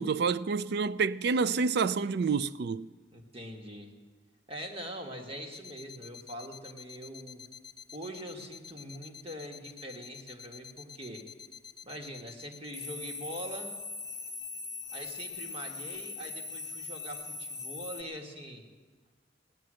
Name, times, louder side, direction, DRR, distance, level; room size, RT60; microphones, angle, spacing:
voice 1, 0.0-2.9, right 5 dB, 60° right, 0.4 m, -28 dB
voice 2, 3.1-3.9 4.5-7.4 7.9-11.2 11.8-13.8 14.9-18.6, equal, 30° right, 2.0 m, -43 dB
sound 1, 5.5-18.0, left 4 dB, 20° left, 0.8 m, -42 dB
17.5 x 10.5 x 7.7 m
head